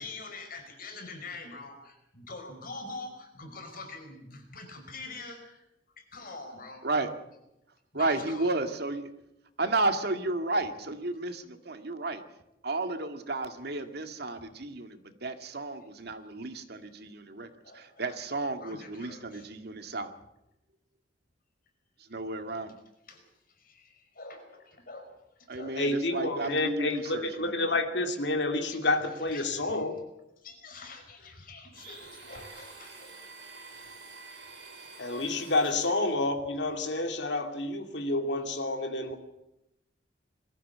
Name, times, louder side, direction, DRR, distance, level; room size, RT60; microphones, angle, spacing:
voice 1, 0.0-5.6 6.0-7.1 7.9-8.5 14.4-14.6 17.6-19.5 23.1-25.2 25.5-25.8 26.1-26.6 27.0-27.1 28.7-28.8 29.2-29.8 30.4-33.2 35.1-36.2 36.6-36.9 37.4-37.5, left 3 dB, 55° left, 5 dB, 5.3 m, -46 dB
voice 2, 7.9-9.1 9.6-12.2 12.6-17.5 17.7-20.1 22.1-22.8 25.5-27.7, right 2 dB, 60° right, 7 dB, 2.0 m, -32 dB
voice 3, 25.7-30.0 35.0-39.2, left 2 dB, 70° left, 5 dB, 2.8 m, -29 dB
Domestic sounds home sounds, 31.7-36.2, right 3 dB, 85° right, 6.3 m, -48 dB
22.5 x 14.5 x 8.6 m, 0.88 s
head